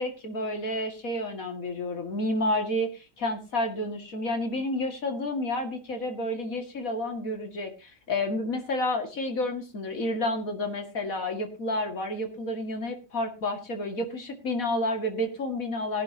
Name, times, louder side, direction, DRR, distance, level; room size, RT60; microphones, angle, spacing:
voice 1, 0.0-16.0, left 1 dB, 70° left, 5 dB, 2.6 m, -30 dB
18.5 x 11.0 x 2.9 m, 0.29 s
omnidirectional pair, 1.5 m